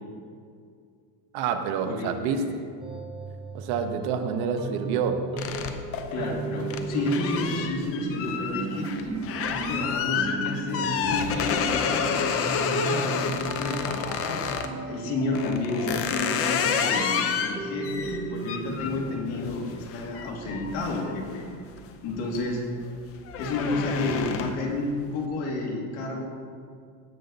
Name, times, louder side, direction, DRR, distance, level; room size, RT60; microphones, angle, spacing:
voice 1, 1.3-2.7 3.5-5.3, right 6 dB, 60° right, 7 dB, 0.9 m, -28 dB
voice 2, 1.9-2.6 6.1-9.1 9.5-14.4 14.9-21.4 22.0-22.6 23.4-26.2, left 2 dB, 65° left, -1 dB, 2.5 m, -31 dB
sound 1, 2.8-18.9, right 3 dB, 10° right, 0.6 m, -36 dB
sound 2, 5.4-14.7 15.3-21.8 22.2-22.6 22.9-24.7, left 6 dB, 35° left, 0.6 m, -30 dB
17.0 x 6.7 x 4.0 m, 2.3 s
cardioid pair, 180°, 43 cm